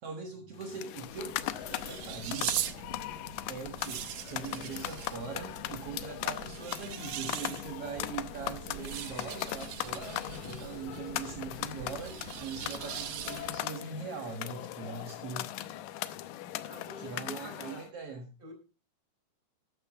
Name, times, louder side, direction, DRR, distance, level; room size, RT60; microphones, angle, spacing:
voice 1, 0.0-1.4 1.7-2.6 3.5-15.5 17.0-18.4, right 5 dB, 60° right, 3 dB, 1.6 m, -41 dB
sound 1, 0.6-17.9, left 14 dB, 90° left, 1.9 m, -39 dB
sound 2, 1.0-13.7, right 11 dB, 75° right, 1.9 m, -41 dB
voice 2, 16.6-17.9 18.4-18.5, equal, 10° right, 4 dB, 4.0 m, -47 dB
13.5 x 12.0 x 3.8 m, 0.31 s
omnidirectional pair, 5.0 m